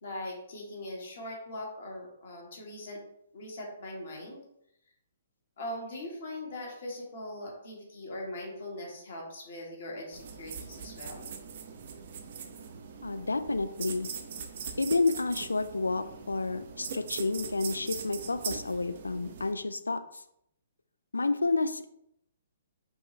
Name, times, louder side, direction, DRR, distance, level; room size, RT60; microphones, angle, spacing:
voice 1, 0.0-3.0 3.3-4.4 5.6-11.3, left 1 dB, 55° left, -1 dB, 1.4 m, -41 dB
sound 1, 10.1-19.5, right 6 dB, 50° right, 0.5 m, -41 dB
voice 2, 13.0-14.1 14.8-20.2 21.1-21.9, left 3 dB, 80° left, 10 dB, 0.3 m, -30 dB
5.3 x 2.4 x 3.1 m, 0.75 s
figure-of-eight pair, 125°, 0 cm